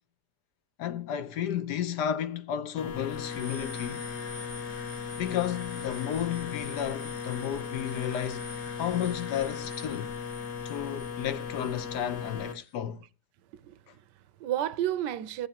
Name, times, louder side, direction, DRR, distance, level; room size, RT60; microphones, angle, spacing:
voice 1, 0.8-4.1 5.2-8.4 8.8-10.2 10.6-13.0, left 10 dB, 75° left, 1.4 m, -32 dB
sound 1, 2.8-12.5, left 6 dB, 50° left, 1.5 m, -37 dB
voice 2, 13.5-15.5, right 12 dB, 80° right, 1.3 m, -32 dB
14.5 x 8.3 x 2.9 m
omnidirectional pair, 1.8 m